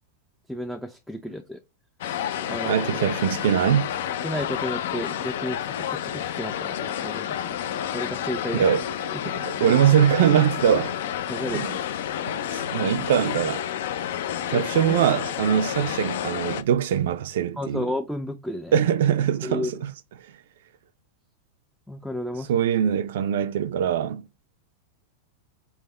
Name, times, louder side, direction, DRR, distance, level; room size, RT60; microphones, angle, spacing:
voice 1, 0.5-1.6 2.5-2.8 4.2-7.6 7.9-8.6 9.4-9.5 11.3-11.6 14.5-15.0 17.6-18.8 19.4-19.8 21.9-22.5, left 1 dB, ahead, 0.3 m, -32 dB
sound 1, 2.0-16.6, left 10 dB, 70° left, 0.5 m, -30 dB
voice 2, 2.7-3.9 8.5-8.8 9.2-11.0 11.5-11.8 12.3-13.6 14.5-17.9 18.7-19.9 22.5-24.2, right 9 dB, 75° right, 0.4 m, -22 dB
5.5 x 2.1 x 3.2 m
supercardioid pair, 150°, 0 cm